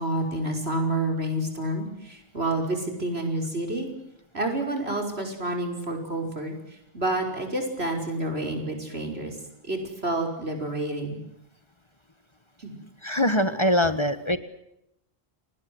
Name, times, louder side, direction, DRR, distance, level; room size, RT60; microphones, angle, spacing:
voice 1, 0.0-3.9 4.3-9.4 9.6-11.2 12.6-12.7, right 1 dB, 80° right, 3 dB, 5.9 m, -29 dB
voice 2, 13.0-14.4, left 1 dB, 25° left, 12 dB, 1.5 m, -23 dB
29.5 x 20.5 x 7.9 m, 0.82 s
omnidirectional pair, 1.1 m